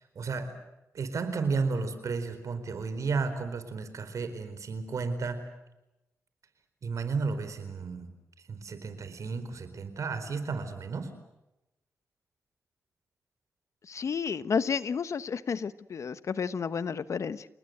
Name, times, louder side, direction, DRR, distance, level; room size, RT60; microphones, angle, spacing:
voice 1, 0.1-0.5 0.9-5.4 6.8-8.1 8.5-11.1, right 4 dB, 70° right, 10 dB, 4.4 m, -33 dB
voice 2, 13.9-17.5, left 6 dB, 65° left, 14 dB, 1.1 m, -31 dB
29.5 x 19.5 x 8.0 m, 0.95 s
cardioid pair, 75°, 6 cm